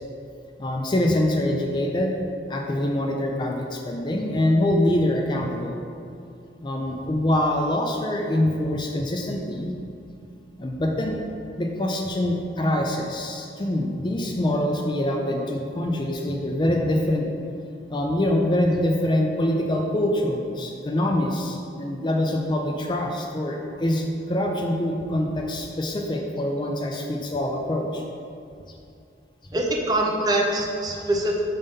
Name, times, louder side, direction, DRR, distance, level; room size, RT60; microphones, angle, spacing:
voice 1, 0.6-2.1 2.5-5.7 6.6-9.7 10.6-11.2 11.6-17.2 17.9-28.0 28.7-28.8, left 1 dB, 25° left, 1 dB, 0.4 m, -24 dB
voice 2, 29.5-31.4, right 1 dB, 20° right, -1 dB, 0.6 m, -23 dB
5.5 x 3.6 x 5.3 m, 2.4 s
head